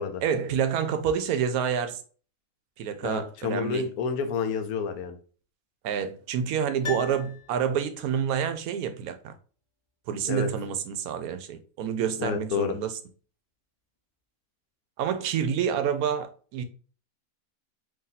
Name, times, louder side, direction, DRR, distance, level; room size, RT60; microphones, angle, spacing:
voice 1, 0.2-2.0 2.8-3.9 5.8-9.3 10.1-12.9 15.0-16.6, right 8 dB, 80° right, 1.0 m, -28 dB
voice 2, 3.0-5.2 10.3-10.5 12.2-12.8, left 6 dB, 85° left, 1.1 m, -29 dB
Piano, 6.8-8.1 8.4-8.5, left 7 dB, 45° left, 0.3 m, -39 dB
2.9 x 2.7 x 3.9 m
omnidirectional pair, 1.5 m